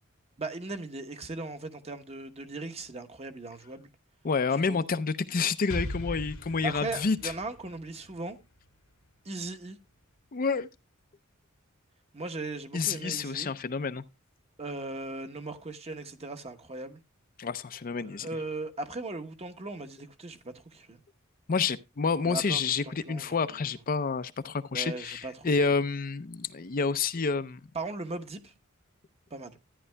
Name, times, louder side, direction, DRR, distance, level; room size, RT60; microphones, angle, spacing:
voice 1, 0.4-3.9 4.7-4.9 6.6-8.4 9.2-9.8 12.1-13.5 14.6-17.0 18.0-21.0 22.2-23.7 24.7-25.5 27.7-28.5 29.3-29.6, right 2 dB, 30° right, 1.0 m, -38 dB
voice 2, 4.2-7.3 10.3-10.7 12.7-14.0 17.4-18.3 21.5-27.6, left 5 dB, 40° left, 0.5 m, -29 dB
Explosion, 5.7-9.5, equal, 85° left, 1.7 m, -40 dB
13.5 x 9.8 x 2.2 m
head